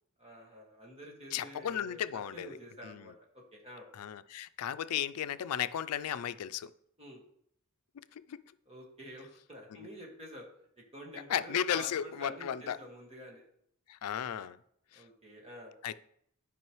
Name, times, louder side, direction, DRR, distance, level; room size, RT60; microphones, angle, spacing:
voice 1, 0.2-3.9 7.0-7.2 8.7-10.5 10.9-13.5 14.9-15.7, equal, 30° right, 1.8 m, -49 dB
voice 2, 1.3-2.6 2.8-3.1 3.9-6.7 8.1-8.4 11.3-12.8 13.9-14.6 14.9-15.0 15.8-16.0, left 9 dB, 90° left, 0.4 m, -35 dB
12.5 x 5.2 x 3.1 m
head